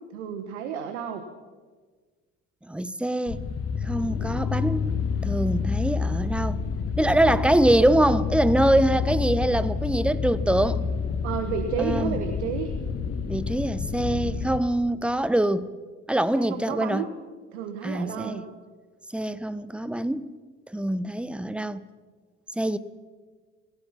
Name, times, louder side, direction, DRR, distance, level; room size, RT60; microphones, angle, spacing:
voice 1, 0.1-1.2 7.2-7.4 11.2-12.7 16.3-17.1 17.5-18.5, right 7 dB, 75° right, 1.4 m, -31 dB
voice 2, 2.7-3.4 3.8-4.9 5.2-6.6 7.0-10.8 11.8-12.1 13.2-15.7 16.1-17.0 17.8-18.4 19.1-20.3 20.7-21.8 22.6-22.8, right 1 dB, 5° right, 0.9 m, -24 dB
sound 1, 3.3-14.6, left 6 dB, 40° left, 1.8 m, -28 dB
28.0 x 16.0 x 5.8 m
figure-of-eight pair, 50°, 36 cm